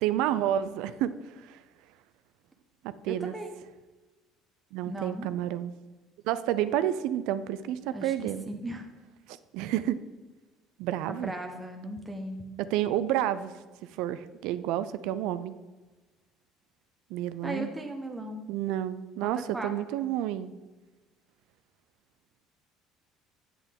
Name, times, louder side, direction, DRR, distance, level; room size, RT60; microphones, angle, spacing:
voice 1, 0.0-1.6 2.8-3.3 4.7-5.7 6.2-8.4 9.3-10.0 10.8-11.3 12.6-13.5 14.0-15.6 17.1-17.7 18.5-20.5, right 12 dB, 75° right, 13 dB, 0.4 m, -30 dB
voice 2, 3.1-3.6 4.9-5.3 7.9-8.1 8.5-8.9 11.1-12.5 17.4-18.5 19.2-19.7, right 1 dB, 10° right, 3 dB, 0.7 m, -37 dB
8.4 x 8.1 x 3.6 m, 1.2 s
cardioid pair, 145°, 0 cm